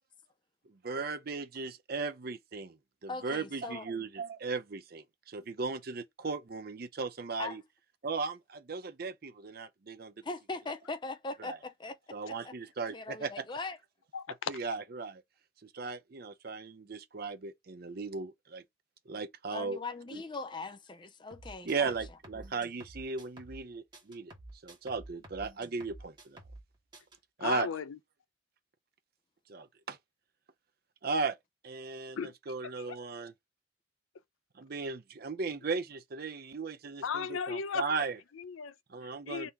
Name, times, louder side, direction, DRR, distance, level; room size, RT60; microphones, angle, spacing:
voice 1, 0.8-7.6 8.0-10.1 11.4-11.6 12.1-13.4 14.5-15.2 15.6-18.6 19.1-19.8 20.1-20.2 21.6-24.3 24.6-26.4 27.4-27.7 29.5-30.0 31.0-31.4 31.6-33.3 34.6-38.2 38.9-39.5, right 4 dB, 50° right, 0.5 m, -37 dB
voice 2, 3.1-3.9 7.4-7.6 10.2-12.0 12.3-12.5 12.9-13.8 19.5-21.9, left 3 dB, 25° left, 0.4 m, -40 dB
voice 3, 14.1-14.5 27.4-28.0 32.2-32.3 32.6-33.0 37.0-38.1 38.3-38.7 39.3-39.5, left 6 dB, 80° left, 0.5 m, -36 dB
sound 1, 21.3-23.7 23.9-26.7 26.9-27.2, right 2 dB, 20° right, 1.4 m, -50 dB
4.0 x 2.9 x 3.4 m
head